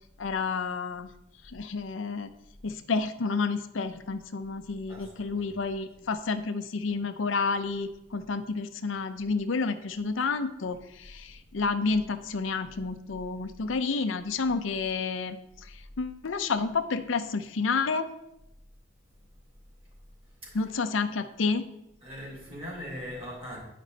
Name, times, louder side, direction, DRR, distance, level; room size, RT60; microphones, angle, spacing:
voice 1, 0.2-1.1 1.5-2.3 2.6-15.4 16.0-18.1 20.5-21.7, left 4 dB, 80° left, 9 dB, 0.6 m, -30 dB
voice 2, 4.9-5.5 6.0-6.1 20.4-20.6 22.0-23.6, equal, 30° right, -4 dB, 3.4 m, -40 dB
10.0 x 5.2 x 4.0 m, 0.84 s
head